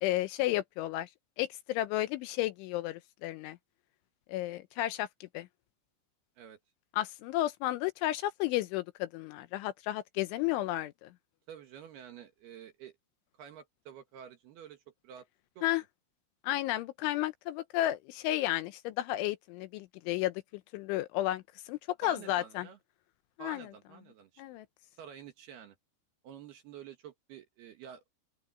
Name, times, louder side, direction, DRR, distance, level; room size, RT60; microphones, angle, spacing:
voice 1, 0.0-1.1 1.4-3.6 4.3-5.5 6.9-11.1 15.6-15.8 16.4-20.4 20.7-22.7 23.4-23.6 24.4-24.7, left 15 dB, 80° left, 3.0 m, -32 dB
voice 2, 11.5-13.0 13.4-15.3 15.6-15.7 22.0-22.8 23.4-24.4 25.0-25.8 26.2-28.0, right 8 dB, 65° right, 3.0 m, -49 dB
open air
omnidirectional pair, 5.9 m